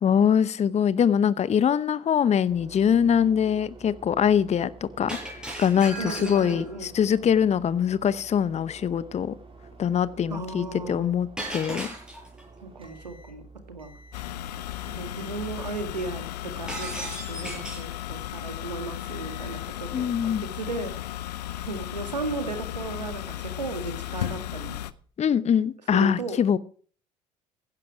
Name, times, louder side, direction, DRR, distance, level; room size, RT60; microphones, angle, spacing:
voice 1, 0.0-4.7 5.0-9.3 9.8-11.9 19.9-20.4 25.2-26.6, left 8 dB, 30° left, 0.8 m, -23 dB
sound 1, 2.5-15.7, right 3 dB, 25° right, 3.7 m, -49 dB
Shatter, 5.1-6.7 11.4-12.4 16.7-17.9, right 1 dB, 5° right, 7.9 m, -36 dB
voice 2, 6.0-6.9 10.3-11.1 12.6-13.9 14.9-21.0 21.6-24.8 25.9-26.4, right 3 dB, 90° right, 2.0 m, -35 dB
sound 2, 14.1-24.9, left 13 dB, 75° left, 0.7 m, -35 dB
15.5 x 11.0 x 4.9 m
figure-of-eight pair, 60°, 21 cm